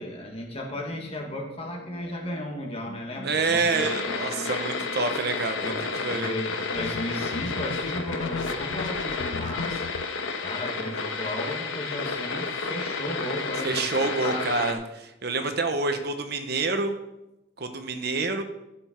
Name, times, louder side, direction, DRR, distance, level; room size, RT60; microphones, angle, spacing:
voice 1, 0.0-3.9 5.6-9.8 10.4-14.5 15.4-15.5, left 1 dB, 30° left, 1 dB, 1.7 m, -35 dB
sound 1, 0.7-6.2, equal, 45° left, 1.5 m, -44 dB
voice 2, 3.2-6.4 13.6-17.0 17.6-18.4, right 3 dB, 55° right, 7 dB, 1.0 m, -27 dB
sound 2, 3.7-14.7, left 4 dB, 90° left, 1.2 m, -31 dB
sound 3, 6.7-10.0, left 6 dB, 70° left, 0.3 m, -36 dB
12.5 x 7.0 x 4.5 m, 0.90 s
head